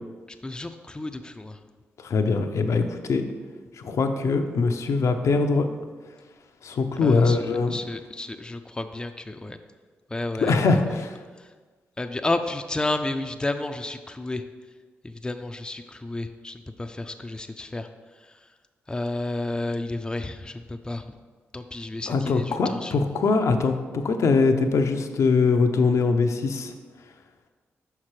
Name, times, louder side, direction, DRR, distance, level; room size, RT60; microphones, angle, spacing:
voice 1, 0.4-1.6 7.0-9.6 10.1-10.5 10.9-11.0 11.4-11.5 12.0-14.4 15.0-17.9 18.9-21.1 21.5-23.0, left 2 dB, 15° left, 7 dB, 0.4 m, -31 dB
voice 2, 2.0-3.2 3.8-5.7 6.6-7.8 10.4-11.2 22.1-26.7, left 4 dB, 65° left, 6 dB, 0.5 m, -22 dB
5.8 x 5.7 x 3.2 m, 1.4 s
hypercardioid pair, 40°, 6 cm